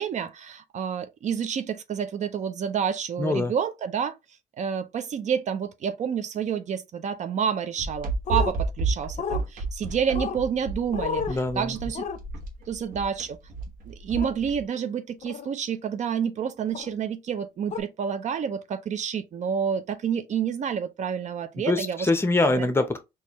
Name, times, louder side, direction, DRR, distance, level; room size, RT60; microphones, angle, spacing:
voice 1, 0.0-4.2 4.6-12.0 12.6-13.4 13.9-22.0 22.6-22.7, right 7 dB, 50° right, 0.5 m, -29 dB
voice 2, 3.2-3.5 11.3-11.8 21.6-23.0, left 2 dB, 15° left, 0.8 m, -24 dB
sound 1, 7.8-14.6, right 3 dB, 70° right, 1.0 m, -31 dB
sound 2, 8.2-8.5 9.2-9.4 10.1-10.4 10.9-11.4 11.9-12.2 14.2-14.3 15.2-15.5 16.7-16.9 17.7-17.8, left 6 dB, 50° left, 0.6 m, -31 dB
4.2 x 2.5 x 3.0 m
cardioid pair, 95°, 15 cm